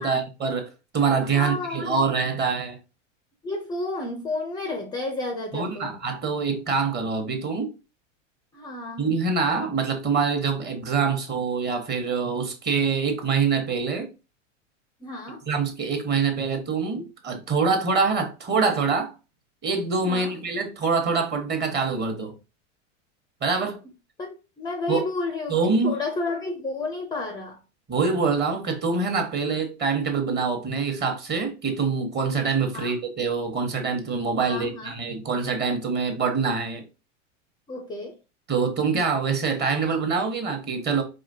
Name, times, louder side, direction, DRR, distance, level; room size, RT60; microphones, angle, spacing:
voice 1, 0.0-2.8 5.5-7.7 9.0-14.1 15.5-19.1 19.6-22.3 23.4-23.8 24.9-25.0 25.5-25.9 27.9-36.8 38.5-41.0, right 5 dB, 25° right, 1.1 m, -25 dB
voice 2, 1.3-2.1 3.4-5.9 8.5-9.0 15.0-15.4 20.0-20.3 24.2-27.6 32.7-33.0 34.5-35.0 37.7-38.2, left 3 dB, 10° left, 0.4 m, -31 dB
4.9 x 2.9 x 2.7 m
supercardioid pair, 120°, 38 cm